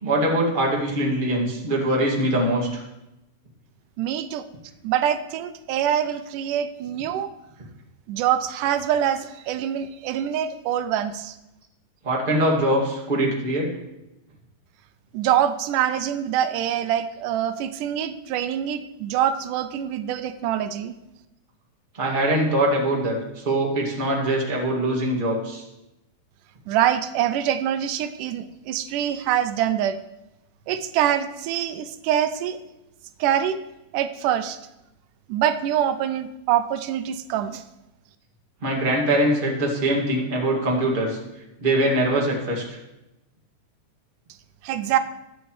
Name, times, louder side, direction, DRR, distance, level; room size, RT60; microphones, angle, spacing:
voice 1, 0.0-2.8 12.0-13.7 22.0-25.6 38.6-41.2 41.6-42.8, right 1 dB, 20° right, -2 dB, 1.8 m, -23 dB
voice 2, 4.0-4.4 4.8-7.3 8.1-11.4 15.1-20.9 26.7-30.0 30.7-32.6 33.2-33.6 33.9-34.6 35.3-37.6 44.6-45.0, right 10 dB, 90° right, 10 dB, 2.2 m, -24 dB
21.5 x 8.1 x 3.2 m, 0.92 s
omnidirectional pair, 3.6 m